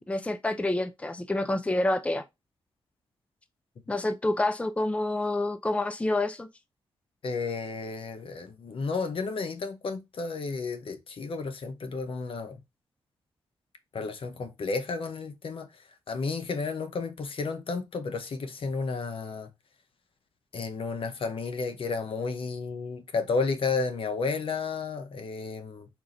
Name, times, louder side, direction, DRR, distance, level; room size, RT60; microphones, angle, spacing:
voice 1, 0.1-2.2 3.9-6.5, left 2 dB, 10° left, 0.5 m, -28 dB
voice 2, 7.2-12.6 13.9-19.5 20.5-25.9, left 4 dB, 60° left, 0.8 m, -32 dB
4.5 x 2.5 x 3.9 m
cardioid pair, 70°, 10 cm